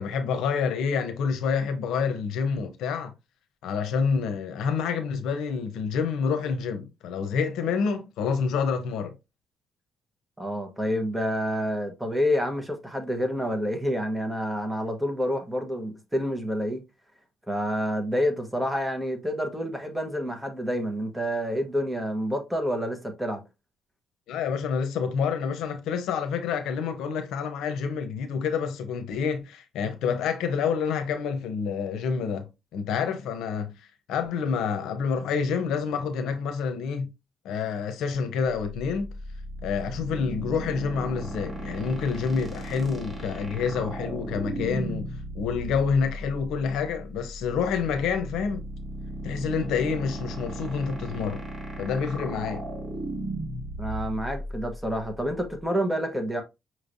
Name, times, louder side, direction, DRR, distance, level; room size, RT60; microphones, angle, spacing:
voice 1, 0.0-3.1 3.6-9.1 24.3-33.7 34.1-37.1 37.4-39.1 39.6-48.6 49.2-51.4 51.8-52.7, left 6 dB, 85° left, 0.8 m, -28 dB
voice 2, 10.4-16.8 17.5-23.4 53.8-56.4, equal, 5° right, 1.2 m, -28 dB
sound 1, 38.6-55.6, right 1 dB, 25° right, 1.8 m, -36 dB
5.7 x 3.2 x 2.6 m
cardioid pair, 90°, 0 cm